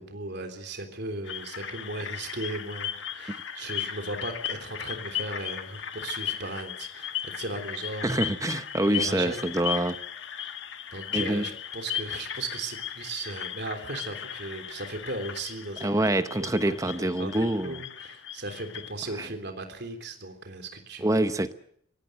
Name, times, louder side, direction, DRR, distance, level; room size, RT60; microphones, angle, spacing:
voice 1, 0.0-8.3 8.8-9.4 9.7-9.8 10.4-10.5 10.9-16.0 16.4-21.2, right 2 dB, 55° right, 3.4 m, -37 dB
sound 1, 1.3-18.9, left 10 dB, 60° left, 1.6 m, -36 dB
voice 2, 8.0-10.0 11.1-11.5 15.8-17.8 19.2-19.3 21.0-21.5, right 1 dB, 15° right, 0.8 m, -26 dB
24.0 x 18.0 x 8.0 m
head